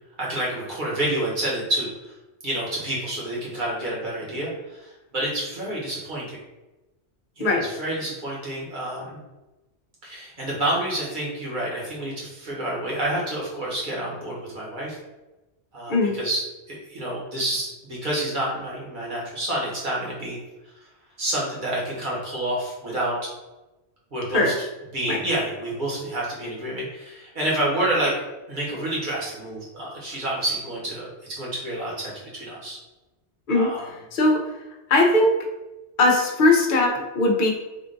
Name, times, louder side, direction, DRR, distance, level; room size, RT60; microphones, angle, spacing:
voice 1, 0.2-2.1 2.4-6.4 7.4-9.2 10.0-15.0 15.7-20.4 21.2-23.3 24.1-24.7 24.9-28.1 28.5-32.8 33.5-33.9, right 1 dB, 45° right, -5 dB, 1.3 m, -28 dB
voice 2, 34.1-34.4 34.9-35.4 36.0-37.5, left 2 dB, 50° left, 0 dB, 0.8 m, -19 dB
3.7 x 2.4 x 3.8 m, 1.1 s
omnidirectional pair, 1.2 m